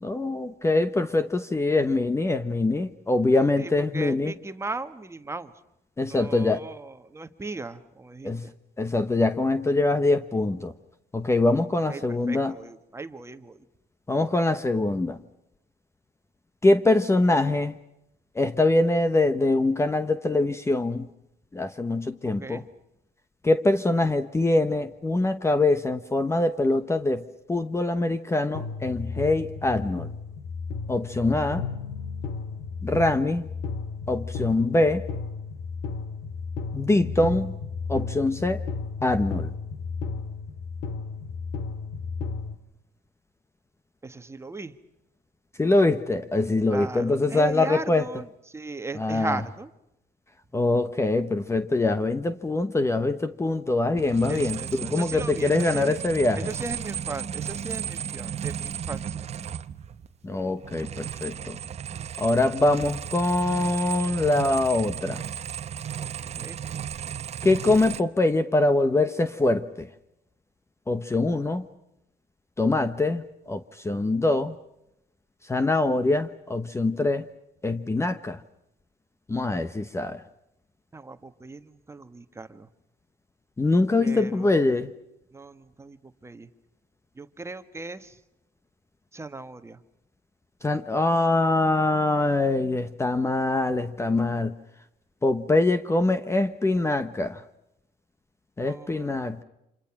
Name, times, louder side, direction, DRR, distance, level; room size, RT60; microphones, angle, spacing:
voice 1, 0.0-4.3 6.0-6.6 8.2-8.5 8.8-10.7 11.1-12.6 14.1-15.2 16.6-17.8 18.3-21.1 21.5-22.6 23.4-30.1 30.9-31.6 32.8-33.5 34.1-35.1 36.7-37.6 37.9-38.6 39.0-39.5 45.6-48.1 48.9-49.4 50.5-56.5 60.2-61.6 62.2-65.2 67.4-69.9 70.9-71.6 72.6-74.5 75.4-77.2 77.6-78.4 79.3-80.2 83.6-84.9 90.6-94.5 95.2-97.4 98.6-99.4, left 2 dB, 15° left, 11 dB, 1.0 m, -23 dB
voice 2, 3.6-5.5 6.1-8.5 11.9-13.6 22.2-22.6 44.0-44.7 46.7-49.7 54.3-56.0 56.3-59.3 66.4-66.6 80.9-82.7 84.0-84.7 85.3-86.5 87.1-88.2 89.1-89.8 98.6-99.2, right 3 dB, 15° right, 10 dB, 1.4 m, -37 dB
sound 1, 28.5-42.5, left 4 dB, 85° left, 2.3 m, -34 dB
sound 2, 54.0-60.1 60.3-68.0, right 9 dB, 40° right, 1.0 m, -34 dB
29.5 x 26.5 x 6.0 m, 0.86 s
cardioid pair, 110°, 17 cm